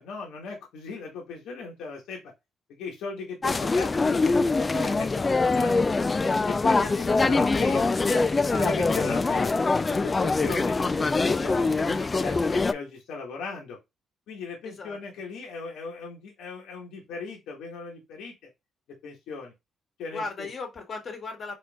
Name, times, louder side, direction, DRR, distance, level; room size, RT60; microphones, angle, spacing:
voice 1, 0.0-2.2 2.8-5.8 6.4-6.8 7.2-7.9 8.4-9.5 9.9-13.8 14.3-18.3 19.0-19.5 20.0-20.5, left 4 dB, 85° left, 1.7 m, -37 dB
sound 1, 3.4-12.7, left 3 dB, 25° left, 0.3 m, -24 dB
voice 2, 6.8-8.6 9.1-9.6 14.6-15.0 20.1-21.5, left 4 dB, 50° left, 1.8 m, -37 dB
4.4 x 4.3 x 2.4 m
cardioid pair, 90°, 0 cm